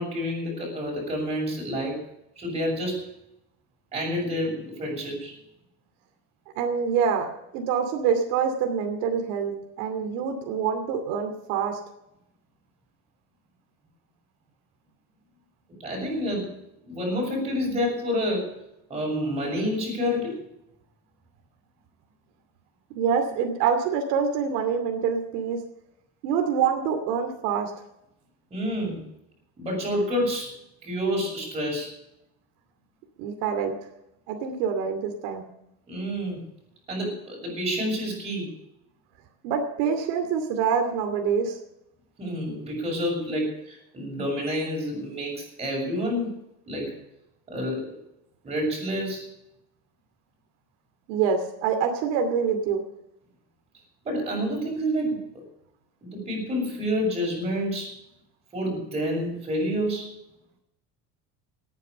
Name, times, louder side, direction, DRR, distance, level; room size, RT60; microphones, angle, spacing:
voice 1, 0.0-2.0 2.3-3.0 3.9-5.3 15.8-16.5 16.8-18.5 18.9-20.4 28.5-29.0 29.6-30.5 30.8-31.9 35.9-36.4 36.9-38.5 42.2-46.4 46.7-46.9 47.5-48.0 48.4-49.3 54.0-55.2 56.0-57.9 58.5-60.1, equal, 20° right, -1 dB, 6.8 m, -28 dB
voice 2, 6.6-7.3 7.5-11.8 22.9-25.6 26.2-27.7 33.2-33.7 34.3-35.5 39.4-41.6 51.1-52.8, right 6 dB, 85° right, 5 dB, 2.6 m, -26 dB
18.0 x 9.7 x 6.8 m, 0.83 s
cardioid pair, 170°, 33 cm